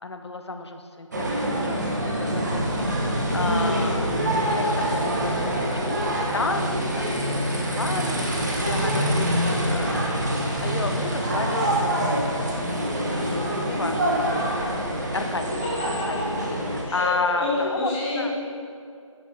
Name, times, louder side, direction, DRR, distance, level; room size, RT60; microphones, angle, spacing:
voice 1, 0.0-2.8 3.1-4.1 4.5-7.1 7.5-9.3 9.7-10.1 10.6-12.5 13.1-14.8 15.1-16.2 16.7-18.3, left 3 dB, 55° left, 6 dB, 0.8 m, -32 dB
sound 1, 1.1-16.8, right 1 dB, 35° right, 1.1 m, -25 dB
voice 2, 3.4-3.8 15.8-16.2 16.8-18.5, left 2 dB, 5° left, -8 dB, 0.6 m, -28 dB
9.7 x 6.9 x 4.9 m, 2.3 s
figure-of-eight pair, 165°, 17 cm